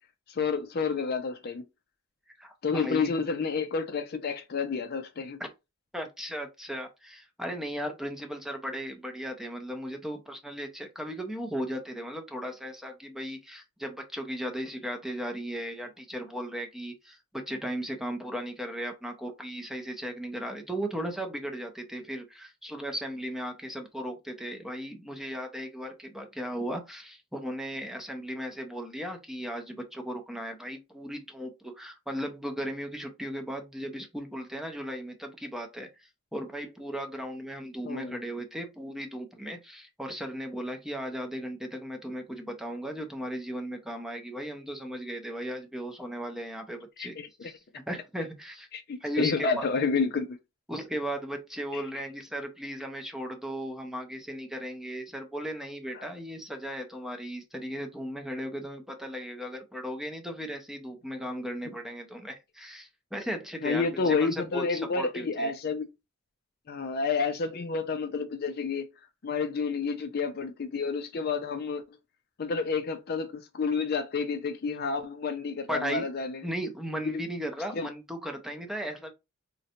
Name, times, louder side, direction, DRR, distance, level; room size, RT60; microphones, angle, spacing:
voice 1, 0.3-1.6 2.6-5.4 37.8-38.2 47.0-47.5 48.7-50.4 51.7-51.8 55.9-56.1 63.6-65.9 66.7-68.9 69.2-71.8 72.4-76.4 77.0-77.2 77.7-77.9, left 5 dB, 45° left, 0.4 m, -30 dB
voice 2, 2.4-3.1 5.4-5.5 5.9-47.5 47.9-48.7 49.0-49.7 50.7-65.5 75.7-76.1 76.4-79.1, equal, ahead, 0.5 m, -36 dB
3.8 x 2.2 x 2.8 m
head